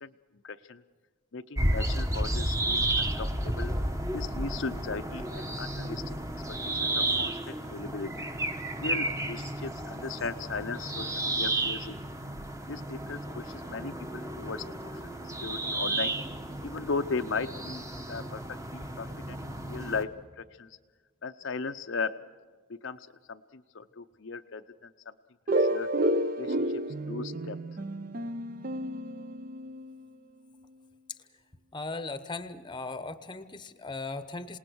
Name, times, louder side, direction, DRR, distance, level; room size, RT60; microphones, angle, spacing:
voice 1, 0.4-0.8 1.3-3.7 4.1-6.2 6.5-8.3 8.8-12.0 12.7-16.1 16.6-20.1 20.4-20.8 21.2-22.1 22.7-24.9 25.5-25.9 26.4-26.6 27.0-27.6, left 4 dB, 60° left, 7 dB, 0.6 m, -37 dB
sound 1, 1.6-20.0, right 1 dB, 15° right, 1.0 m, -32 dB
sound 2, 25.5-30.0, right 1 dB, 40° right, 0.6 m, -30 dB
voice 2, 31.7-34.6, left 3 dB, 20° left, 12 dB, 0.8 m, -38 dB
27.5 x 19.0 x 6.3 m, 1.4 s
head